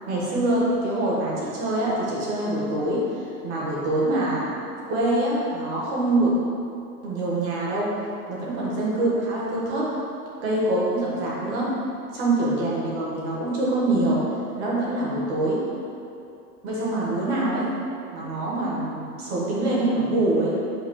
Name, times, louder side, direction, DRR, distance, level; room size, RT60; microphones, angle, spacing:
voice 1, 0.1-4.5 4.9-6.3 7.0-7.9 8.3-9.9 10.4-11.8 12.1-14.3 14.6-15.6 16.6-17.8 18.1-20.6, right 2 dB, 45° right, -6 dB, 1.4 m, -24 dB
6.8 x 2.3 x 3.0 m, 2.6 s
hypercardioid pair, 135°, 48 cm